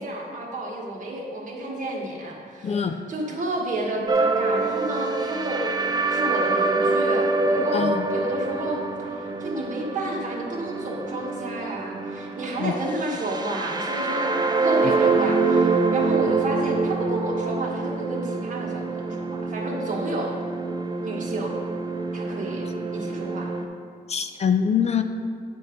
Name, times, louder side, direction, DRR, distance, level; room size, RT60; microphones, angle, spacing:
voice 1, 0.0-5.7 6.1-14.3 14.6-20.3 21.0-21.5 22.1-22.7 22.9-23.5, right 1 dB, 50° right, -1 dB, 1.4 m, -31 dB
voice 2, 2.6-3.0 7.7-8.1 12.6-12.7 24.1-25.0, left 7 dB, 40° left, 8 dB, 0.4 m, -23 dB
sound 1, 4.1-23.7, right 3 dB, 25° right, 0.5 m, -25 dB
9.3 x 4.3 x 5.1 m, 2.3 s
wide cardioid pair, 140°, 16 cm